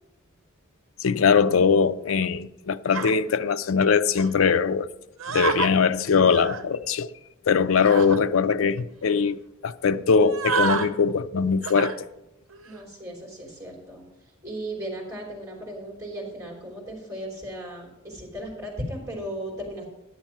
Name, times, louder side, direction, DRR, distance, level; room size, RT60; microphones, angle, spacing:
voice 1, 1.0-4.9 5.3-7.1 7.5-12.1, left 5 dB, 70° left, 0.4 m, -21 dB
sound 1, 2.9-3.1 4.2-4.3 5.2-5.7 6.2-6.6 7.8-8.2 8.8-8.9 9.1-9.3 10.2-10.9 11.6-12.0 12.5-12.8, right 5 dB, 75° right, 0.8 m, -29 dB
voice 2, 12.7-14.0 14.4-19.9, right 1 dB, 15° right, 3.3 m, -36 dB
10.5 x 7.2 x 5.9 m
head